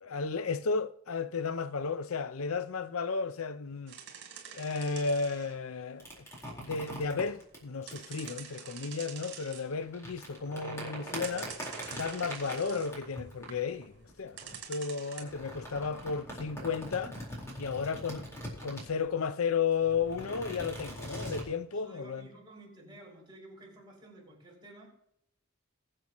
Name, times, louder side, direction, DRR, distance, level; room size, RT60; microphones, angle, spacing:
voice 1, 0.0-4.0 4.5-6.2 6.6-11.5 11.9-17.2 17.6-18.3 18.6-22.3, left 5 dB, 80° left, 0.6 m, -33 dB
sound 1, 3.9-5.7 6.0-7.3 7.9-9.8 10.1-10.7 11.2-12.9 13.3-13.6 14.4-15.2, right 8 dB, 60° right, 3.2 m, -46 dB
sound 2, 6.0-8.3 9.7-14.6 15.2-19.1 19.7-21.5, equal, 15° left, 4.2 m, -42 dB
voice 2, 21.7-24.9, right 1 dB, 20° right, 5.7 m, -52 dB
22.5 x 7.8 x 3.0 m
head